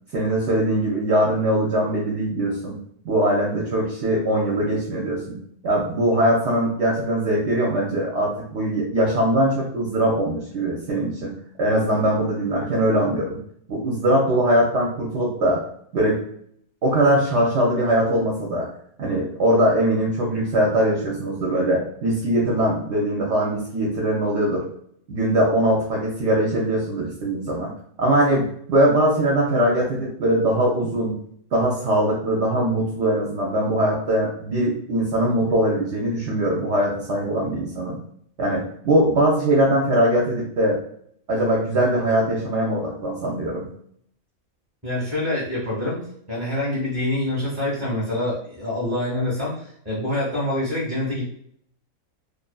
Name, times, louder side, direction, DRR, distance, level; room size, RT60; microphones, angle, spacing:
voice 1, 0.1-13.4 13.7-15.6 15.9-16.2 16.8-18.7 19.0-24.6 25.1-27.7 28.0-31.2 31.5-38.0 38.4-40.8 41.3-43.7, right 1 dB, 65° right, -3 dB, 0.8 m, -21 dB
voice 2, 44.8-46.0 46.3-51.3, left 1 dB, 15° right, -7 dB, 0.6 m, -26 dB
2.5 x 2.5 x 2.2 m, 0.66 s
omnidirectional pair, 1.5 m